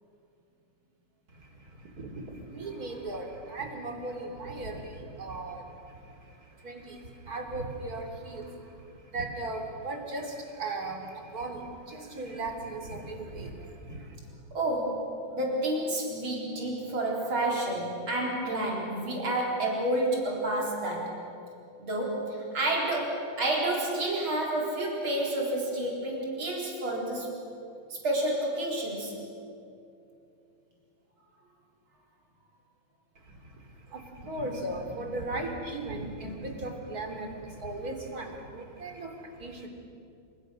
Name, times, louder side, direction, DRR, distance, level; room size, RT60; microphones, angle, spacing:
voice 1, 1.3-14.2 33.2-39.7, right 2 dB, 45° right, 3 dB, 3.7 m, -38 dB
voice 2, 14.5-21.1 21.8-27.3 27.9-29.1, right 1 dB, 85° right, -2 dB, 5.0 m, -30 dB
28.5 x 27.5 x 6.5 m, 2.6 s
omnidirectional pair, 2.2 m